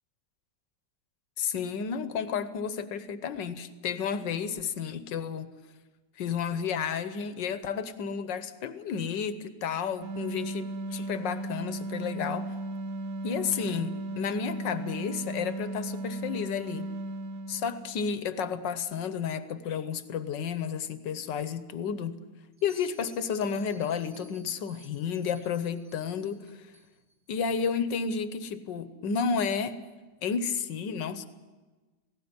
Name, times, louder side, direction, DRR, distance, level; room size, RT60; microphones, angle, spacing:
voice 1, 1.4-5.5 6.2-12.5 13.2-16.9 17.5-22.2 22.6-26.7 27.3-29.8 30.2-31.3, left 6 dB, 65° left, 12 dB, 1.6 m, -32 dB
sound 1, 10.0-18.1, right 2 dB, 60° right, 1.0 m, -36 dB
Bell, 22.5-27.2, right 1 dB, 35° right, 3.8 m, -58 dB
18.0 x 16.5 x 9.7 m, 1.3 s
omnidirectional pair, 2.2 m